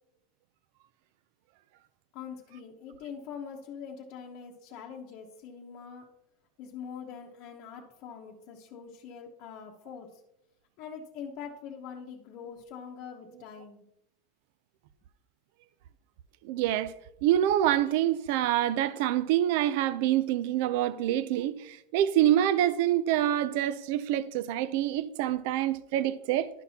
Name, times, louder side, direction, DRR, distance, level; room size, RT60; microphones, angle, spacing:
voice 1, 2.1-6.0 6.6-10.2 10.8-13.8, left 7 dB, 45° left, 1.0 m, -43 dB
voice 2, 16.4-26.5, right 12 dB, 60° right, 0.4 m, -26 dB
11.5 x 6.0 x 2.8 m
supercardioid pair, 155°, 0 cm